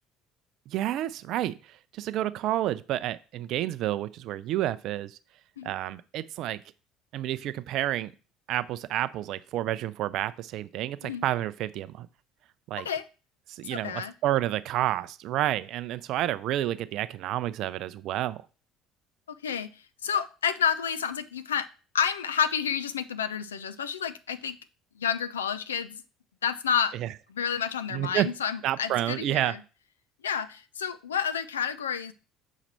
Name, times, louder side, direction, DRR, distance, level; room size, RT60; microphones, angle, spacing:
voice 1, 0.7-5.2 5.6-6.6 7.1-8.1 8.5-12.1 12.7-12.9 13.5-18.4 26.9-27.1 27.9-28.3 28.6-29.5, right 13 dB, 55° right, 0.5 m, -30 dB
voice 2, 13.6-14.1 19.3-19.7 20.0-21.7 21.9-24.6 25.0-26.0 26.4-26.9 27.3-29.6 30.2-32.1, left 7 dB, 80° left, 0.4 m, -30 dB
7.3 x 5.0 x 4.3 m
figure-of-eight pair, 60°, 0 cm